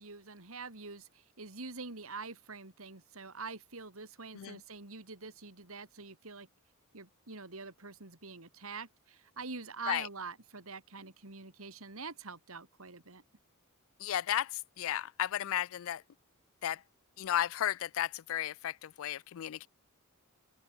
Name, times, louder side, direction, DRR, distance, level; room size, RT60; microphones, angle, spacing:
voice 1, 0.0-6.5 6.9-13.2, right 4 dB, 70° right, 3.0 m, -45 dB
voice 2, 14.0-16.0 16.6-16.8 17.2-19.7, left 11 dB, 65° left, 0.3 m, -34 dB
open air
head